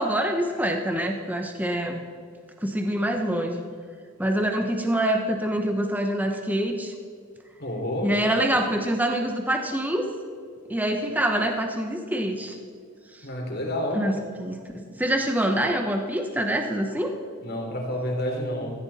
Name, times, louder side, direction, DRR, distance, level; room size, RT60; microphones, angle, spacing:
voice 1, 0.0-2.0 2.6-3.6 4.2-6.9 8.0-10.1 10.7-12.6 13.1-13.3 13.9-17.2, right 1 dB, 5° right, 4 dB, 0.8 m, -25 dB
voice 2, 7.6-8.1 13.2-14.0 17.4-18.7, left 1 dB, 45° left, 0 dB, 3.2 m, -29 dB
16.5 x 14.5 x 4.2 m, 2.1 s
head